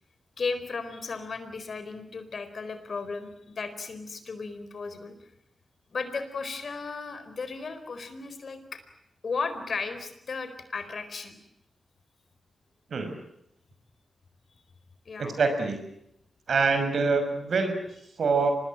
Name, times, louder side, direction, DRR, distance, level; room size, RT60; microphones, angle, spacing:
voice 1, 0.4-5.1 5.9-8.8 9.2-11.4 15.1-15.4, left 4 dB, 60° left, 10 dB, 4.4 m, -35 dB
voice 2, 15.2-15.8 16.5-17.7 18.2-18.5, right 4 dB, 70° right, 7 dB, 6.1 m, -25 dB
25.5 x 20.5 x 9.0 m, 0.79 s
cardioid pair, 65°, 0 cm